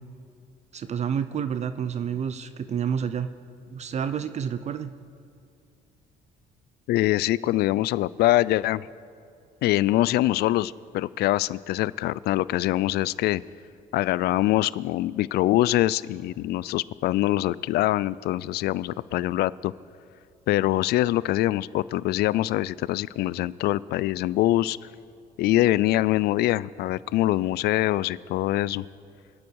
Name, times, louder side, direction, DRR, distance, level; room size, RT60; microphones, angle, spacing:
voice 1, 0.7-3.3 3.7-4.9, right 7 dB, 40° right, 12 dB, 0.6 m, -29 dB
voice 2, 6.9-8.9 9.6-13.4 13.9-19.7 20.5-24.8 25.4-28.8, left 15 dB, 70° left, 20 dB, 0.4 m, -24 dB
26.0 x 9.7 x 4.7 m, 2.4 s
cardioid pair, 110°, 17 cm